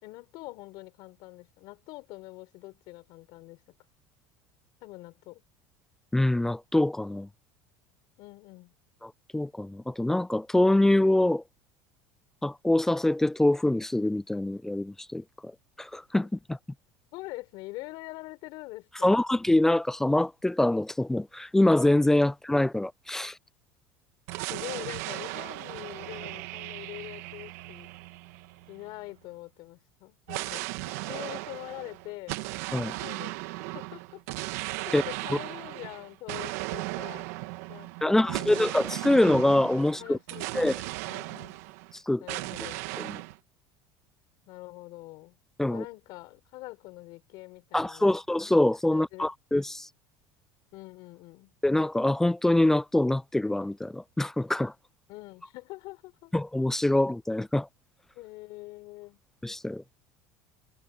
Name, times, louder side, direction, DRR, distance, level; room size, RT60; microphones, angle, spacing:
voice 1, 0.0-3.6 4.8-5.4 8.2-8.7 17.1-19.2 23.2-23.4 24.5-27.9 28.7-32.4 33.0-33.5 33.7-34.2 34.9-37.3 37.7-38.6 40.0-40.8 41.1-41.6 42.2-42.8 44.5-45.4 45.7-48.2 48.9-49.3 50.7-51.5 55.1-56.3 58.1-59.2, left 21 dB, 60° left, 4.8 m, -44 dB
voice 2, 6.1-7.3 9.0-11.4 12.4-15.5 15.8-16.6 19.0-23.4 32.7-32.9 34.9-35.0 38.0-40.2 40.5-40.7 41.9-42.2 43.0-43.2 45.6-45.8 47.7-49.9 51.6-54.7 56.3-57.7 59.4-59.8, left 1 dB, 5° left, 0.4 m, -25 dB
sound 1, 24.3-29.0 30.3-41.9 42.3-43.4, right 21 dB, 80° right, 1.8 m, -37 dB
supercardioid pair, 130°, 8 cm